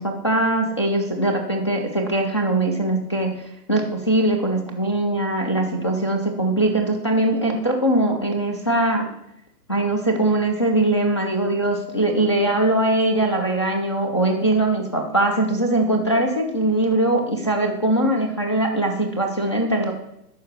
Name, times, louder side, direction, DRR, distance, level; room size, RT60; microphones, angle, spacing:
voice 1, 0.0-9.1 9.7-19.9, right 1 dB, 20° left, 3 dB, 0.4 m, -21 dB
11.5 x 4.3 x 7.2 m, 0.82 s
hypercardioid pair, 145°, 49 cm